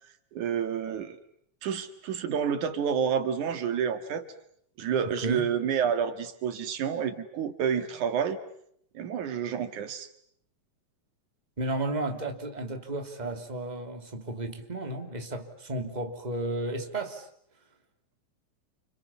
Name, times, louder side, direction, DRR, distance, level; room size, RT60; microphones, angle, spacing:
voice 1, 0.3-1.2 1.6-4.3 4.8-8.4 8.9-10.1, right 7 dB, 90° right, 3.4 m, -29 dB
voice 2, 5.0-5.5 11.6-17.3, right 2 dB, 15° right, 2.8 m, -33 dB
29.5 x 28.0 x 7.1 m
omnidirectional pair, 3.4 m